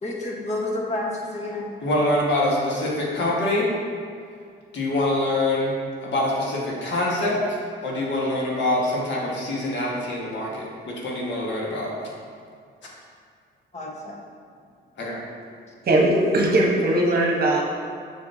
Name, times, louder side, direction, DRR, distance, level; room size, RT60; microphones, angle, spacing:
voice 1, 0.0-1.7 13.7-14.2, left 2 dB, 35° left, -1 dB, 1.3 m, -29 dB
voice 2, 1.8-3.7 4.7-5.8 6.0-7.4 7.8-11.9 15.0-15.2, left 1 dB, 65° left, -4 dB, 1.6 m, -24 dB
voice 3, 15.9-17.6, right 1 dB, 50° right, -1 dB, 1.2 m, -19 dB
6.7 x 6.3 x 2.7 m, 2.2 s
cardioid pair, 90°, 20 cm